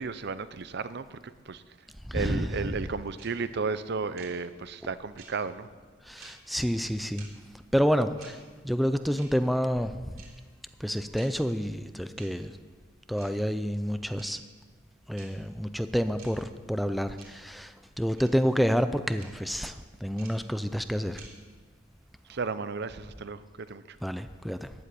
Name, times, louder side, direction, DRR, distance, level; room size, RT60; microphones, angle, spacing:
voice 1, 0.0-1.6 2.1-5.7 22.3-24.0, right 4 dB, 55° right, 13 dB, 0.6 m, -34 dB
voice 2, 2.1-2.6 6.0-7.3 7.7-10.2 10.8-12.6 13.1-14.4 15.1-21.2 24.0-24.7, equal, ahead, 10 dB, 0.4 m, -29 dB
sound 1, 3.2-3.3 4.2-4.3 5.2-5.3 6.2-6.3 7.2-7.3 8.2-8.3 9.2-9.3 10.2-10.3 11.2-11.3 12.2-12.3 13.2-13.3 14.2-14.3 15.2-15.3 16.2-16.3 17.2-17.3 18.2-18.3 19.2-19.3 20.2-20.3 21.2-21.3, right 7 dB, 85° right, 3.5 m, -49 dB
15.0 x 7.7 x 10.0 m, 1.5 s
head